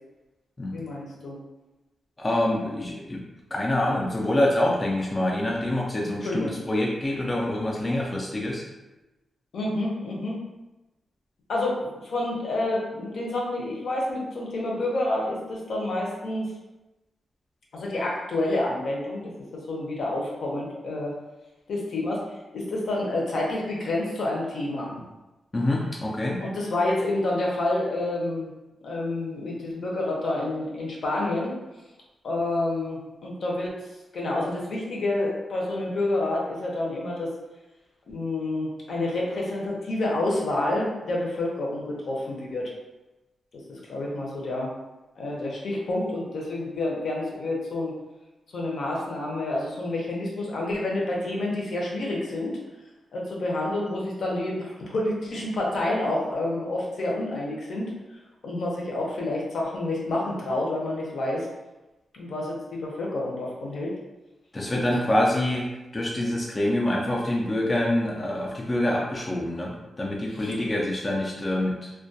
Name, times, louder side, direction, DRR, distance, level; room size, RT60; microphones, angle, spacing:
voice 1, 0.7-1.4 6.2-6.5 9.5-10.4 11.5-16.5 17.7-21.1 21.7-22.2 22.5-24.9 26.4-28.5 28.8-31.5 32.2-33.8 34.1-37.3 38.1-42.7 43.7-44.7 45.2-47.9 48.5-52.6 53.1-57.9 58.4-61.5 62.1-63.9 64.7-65.1 70.4-70.5, left 2 dB, 70° left, -3 dB, 0.6 m, -28 dB
voice 2, 2.2-3.2 3.5-8.6 25.5-26.4 64.5-71.9, left 1 dB, 25° left, -3 dB, 0.3 m, -26 dB
2.2 x 2.2 x 2.6 m, 1.0 s
wide cardioid pair, 125°, 0 cm